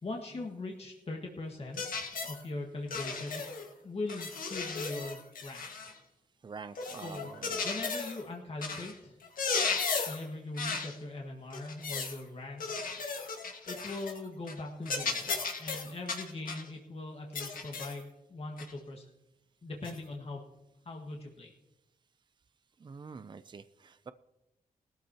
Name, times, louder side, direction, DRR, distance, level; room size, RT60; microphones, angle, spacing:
voice 1, 0.0-3.4 3.8-5.7 7.0-7.3 7.6-9.2 10.1-12.7 13.1-13.2 13.7-15.3 15.6-19.1 19.6-20.4 20.9-21.5, left 2 dB, 45° left, 0 dB, 1.7 m, -40 dB
sound 1, 1.8-2.4 2.9-3.7 4.1-6.0 6.7-8.2 8.6-8.9 9.2-10.2 10.6-10.9 11.5-12.2 12.6-14.2 14.5-14.6 14.9-16.7 17.3-18.0 18.6-18.7 19.8-20.0, left 4 dB, 70° left, 1.8 m, -35 dB
voice 2, 6.4-7.6 22.8-24.1, right 5 dB, 30° right, 12 dB, 0.5 m, -46 dB
18.5 x 13.0 x 2.9 m, 0.93 s
cardioid pair, 90°, 15 cm